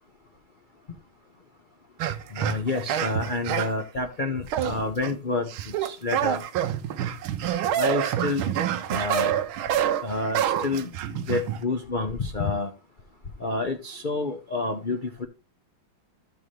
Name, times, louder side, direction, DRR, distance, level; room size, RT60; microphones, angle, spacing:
sound 1, 2.0-3.8 4.5-5.1 5.5-11.6, right 10 dB, 80° right, 1.5 m, -27 dB
voice 1, 2.3-5.5 5.8-6.4 7.8-8.5 8.9-9.3 10.0-12.7 13.4-15.3, left 3 dB, 65° left, 0.4 m, -29 dB
14.0 x 4.7 x 3.2 m
omnidirectional pair, 2.2 m